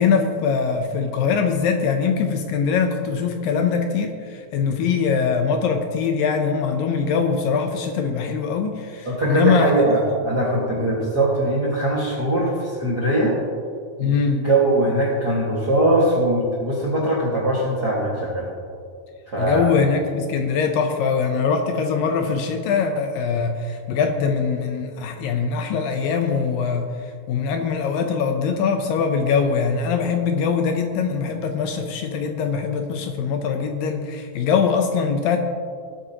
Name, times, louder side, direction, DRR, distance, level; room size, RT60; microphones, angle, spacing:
voice 1, 0.0-10.0 14.0-14.5 19.4-35.4, left 5 dB, 75° left, 5 dB, 2.2 m, -22 dB
voice 2, 9.0-13.4 14.0-14.1 14.4-18.5 19.3-19.7, right 1 dB, 50° right, -6 dB, 1.2 m, -21 dB
19.0 x 8.7 x 2.9 m, 2.2 s
omnidirectional pair, 4.4 m